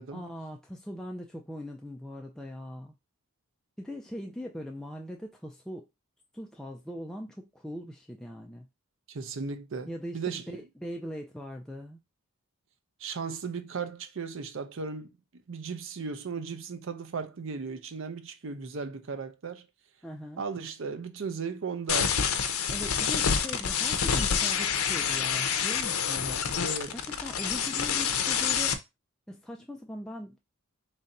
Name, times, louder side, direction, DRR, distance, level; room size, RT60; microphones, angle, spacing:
voice 1, 0.1-3.0 3.8-5.9 6.3-8.7 9.9-12.0 20.0-20.4 22.7-26.5 26.9-28.8 29.3-30.4, equal, 5° left, 0.3 m, -40 dB
voice 2, 9.1-9.9 10.1-10.6 13.0-15.1 15.5-19.7 20.4-22.2 26.6-27.0, right 5 dB, 65° right, 0.5 m, -36 dB
sound 1, 21.9-28.7, left 7 dB, 85° left, 0.6 m, -27 dB
3.3 x 2.6 x 4.0 m
head